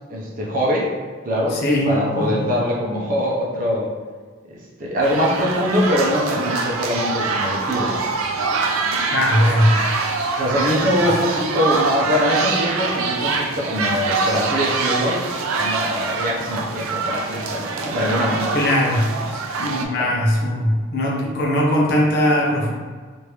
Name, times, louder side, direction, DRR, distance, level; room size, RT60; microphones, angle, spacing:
voice 1, 0.1-0.9 1.2-3.9 4.5-8.0 10.4-15.2 15.5-18.6 20.0-20.1, equal, 40° right, -4 dB, 0.6 m, -23 dB
voice 2, 1.5-2.5 8.9-9.8 18.5-22.7, equal, 50° left, -3 dB, 0.6 m, -20 dB
sound 1, 5.0-19.8, right 4 dB, 85° right, 0.4 m, -24 dB
3.0 x 2.5 x 3.3 m, 1.5 s
head